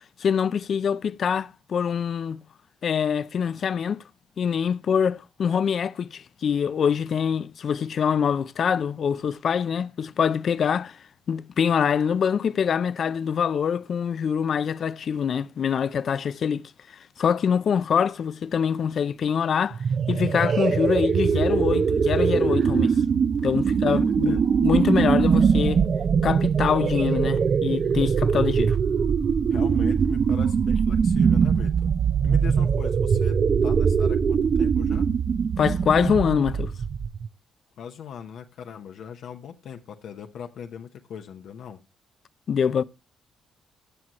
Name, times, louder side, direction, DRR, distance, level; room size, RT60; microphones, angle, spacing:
voice 1, 0.2-2.4 2.8-4.0 4.4-11.0 11.3-16.6 17.2-19.8 20.1-22.9 23.4-25.8 26.2-28.8 35.6-36.7 42.5-42.8, left 7 dB, 55° left, 0.4 m, -24 dB
sound 1, 19.7-37.3, right 6 dB, 50° right, 0.5 m, -22 dB
voice 2, 23.6-24.5 29.5-31.9 32.2-35.1 37.8-41.8, left 8 dB, 70° left, 0.8 m, -40 dB
15.0 x 6.2 x 2.9 m
cardioid pair, 90°, 0 cm